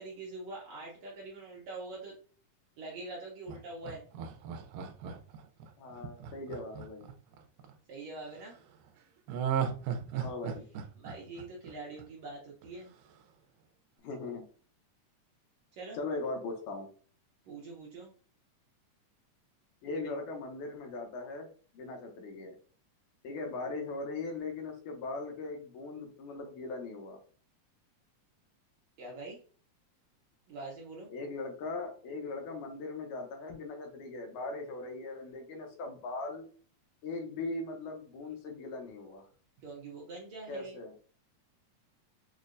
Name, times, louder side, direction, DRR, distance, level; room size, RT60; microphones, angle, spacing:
voice 1, 0.0-2.1 2.8-4.0 7.9-8.6 11.0-12.9 15.7-16.0 17.4-18.1 29.0-29.4 30.5-31.1 39.6-40.8, right 2 dB, 75° right, -2 dB, 1.6 m, -44 dB
Laughter, 3.5-7.7 9.3-12.3 12.6-12.7, right 8 dB, 90° right, 2.2 m, -36 dB
voice 2, 5.8-7.1 10.2-10.6 14.0-14.4 15.9-16.9 19.8-21.5 21.7-22.5 23.2-27.2 31.1-36.5 37.0-39.3 40.5-40.9, left 3 dB, 75° left, 3 dB, 2.1 m, -39 dB
6.3 x 2.1 x 2.5 m, 0.41 s
omnidirectional pair, 3.7 m